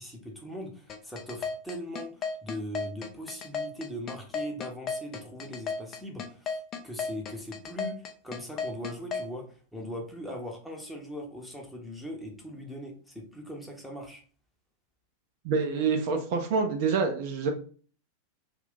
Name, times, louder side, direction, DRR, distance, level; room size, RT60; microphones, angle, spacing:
voice 1, 0.0-14.2, equal, ahead, -1 dB, 0.8 m, -40 dB
sound 1, 0.9-9.3, left 5 dB, 30° left, 0.5 m, -34 dB
voice 2, 15.4-17.5, right 5 dB, 50° right, 4 dB, 0.5 m, -27 dB
2.5 x 2.4 x 3.6 m, 0.42 s
figure-of-eight pair, 90°, 0 cm